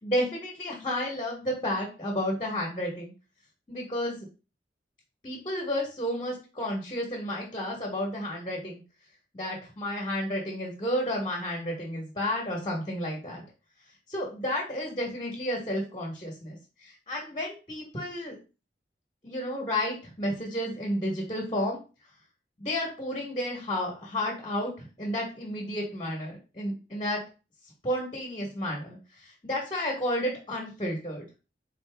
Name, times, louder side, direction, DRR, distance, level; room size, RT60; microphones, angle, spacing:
voice 1, 0.0-3.1 3.7-4.2 5.2-8.8 9.3-13.4 14.1-18.4 19.2-21.8 22.6-27.2 27.8-31.3, left 1 dB, 25° left, -1 dB, 1.1 m, -31 dB
4.0 x 2.6 x 3.4 m, 0.32 s
head